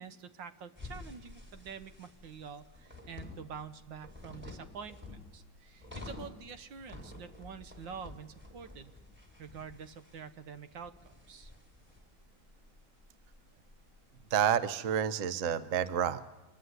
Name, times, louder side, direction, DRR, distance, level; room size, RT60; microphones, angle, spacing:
voice 1, 0.0-8.9 9.4-11.5, right 6 dB, 70° right, 11 dB, 1.7 m, -47 dB
sound 1, 0.8-14.5, left 2 dB, 5° right, 5.3 m, -50 dB
voice 2, 14.3-16.3, right 9 dB, 50° right, 13 dB, 1.2 m, -29 dB
26.0 x 22.0 x 9.7 m, 1.0 s
omnidirectional pair, 2.2 m